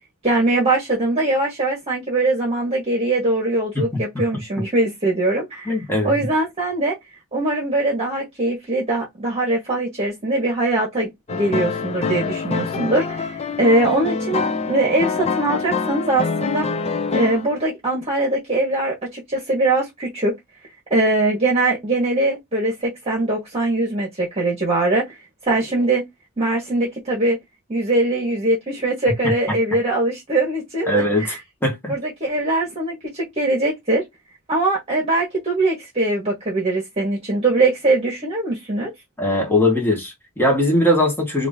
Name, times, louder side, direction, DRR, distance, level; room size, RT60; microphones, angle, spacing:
voice 1, 0.2-5.7 6.0-6.9 7.3-16.7 17.1-20.4 20.9-25.1 25.4-26.1 26.4-27.4 27.7-31.4 31.9-34.0 34.5-38.9, right 2 dB, 30° right, 1.3 m, -21 dB
voice 2, 5.7-6.1 29.2-29.3 30.9-31.4 31.6-31.9 39.2-41.5, left 1 dB, 10° left, 1.3 m, -20 dB
sound 1, 11.3-17.6, left 4 dB, 30° left, 0.5 m, -25 dB
2.9 x 2.6 x 3.5 m
head